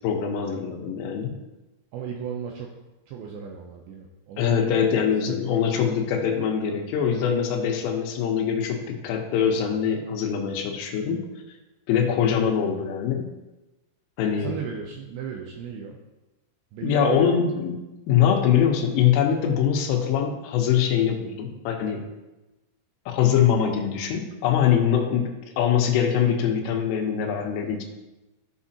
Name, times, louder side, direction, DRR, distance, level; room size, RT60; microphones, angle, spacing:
voice 1, 0.0-1.4 4.4-11.3 11.9-13.3 14.2-14.6 16.8-17.8 18.1-22.1 23.1-27.8, left 8 dB, 80° left, 2 dB, 3.5 m, -23 dB
voice 2, 1.9-2.7 3.1-4.8 5.3-5.7 14.4-16.0 16.7-17.3 18.6-18.7, right 7 dB, 85° right, 1 dB, 2.6 m, -34 dB
13.5 x 6.2 x 2.8 m, 1.0 s
omnidirectional pair, 5.8 m